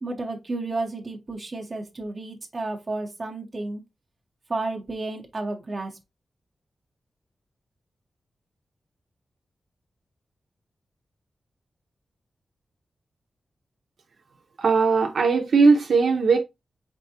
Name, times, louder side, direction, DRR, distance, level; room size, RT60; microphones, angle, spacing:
voice 1, 0.0-3.8 4.5-6.0, right 2 dB, 30° right, 0.8 m, -32 dB
voice 2, 14.6-16.4, right 4 dB, 70° right, 0.7 m, -19 dB
4.4 x 3.4 x 2.8 m
wide cardioid pair, 165°, 0 cm